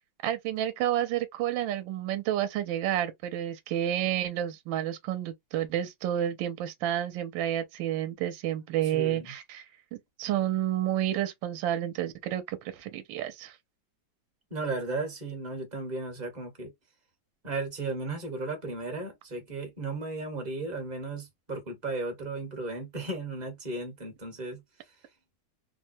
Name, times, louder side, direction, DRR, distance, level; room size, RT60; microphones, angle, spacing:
voice 1, 0.2-9.6 10.2-13.5, right 11 dB, 75° right, 1.3 m, -30 dB
voice 2, 8.8-9.3 14.5-16.7 17.4-24.6, right 3 dB, 30° right, 0.9 m, -35 dB
3.3 x 2.1 x 2.5 m
omnidirectional pair, 2.2 m